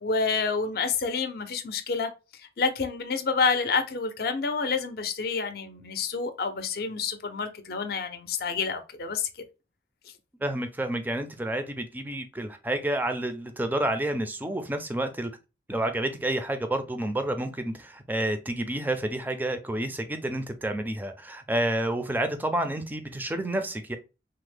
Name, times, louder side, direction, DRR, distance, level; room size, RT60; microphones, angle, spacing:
voice 1, 0.0-2.1 2.6-9.3, left 5 dB, 55° left, 0.5 m, -28 dB
voice 2, 10.4-15.3 15.7-24.0, right 1 dB, 10° right, 0.4 m, -29 dB
3.4 x 2.0 x 3.2 m
head